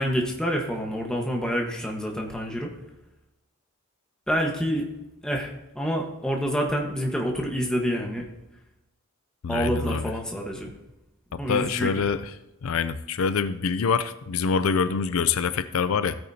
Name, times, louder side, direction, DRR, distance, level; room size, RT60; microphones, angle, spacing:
voice 1, 0.0-2.7 4.3-4.9 5.2-8.2 9.5-10.7 11.4-12.1, equal, 5° left, 0 dB, 1.3 m, -27 dB
voice 2, 9.4-10.1 11.3-12.3 12.6-16.2, left 5 dB, 80° left, 13 dB, 0.5 m, -25 dB
16.0 x 9.0 x 2.8 m, 0.95 s
head